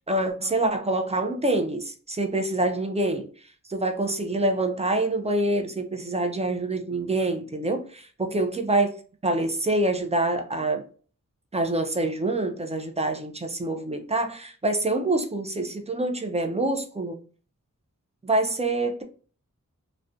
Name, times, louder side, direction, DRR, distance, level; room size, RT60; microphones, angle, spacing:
voice 1, 0.1-8.9 9.2-10.8 11.5-17.2 18.2-19.0, right 2 dB, 20° right, 0.3 m, -26 dB
2.4 x 2.1 x 2.5 m
wide cardioid pair, 65°, 32 cm